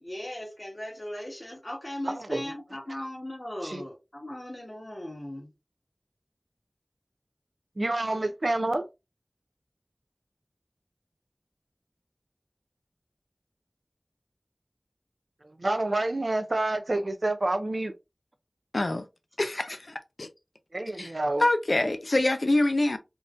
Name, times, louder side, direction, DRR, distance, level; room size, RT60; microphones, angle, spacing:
voice 1, 0.0-5.5, left 1 dB, 45° left, 1.6 m, -38 dB
voice 2, 2.1-2.5 3.6-3.8 7.8-8.9 15.6-17.9 20.7-21.5, right 2 dB, 70° right, 0.5 m, -28 dB
voice 3, 18.7-19.0 19.4-20.3 21.0-21.1 21.4-23.0, left 2 dB, 75° left, 0.5 m, -25 dB
3.7 x 2.5 x 2.5 m
wide cardioid pair, 45°, 0 cm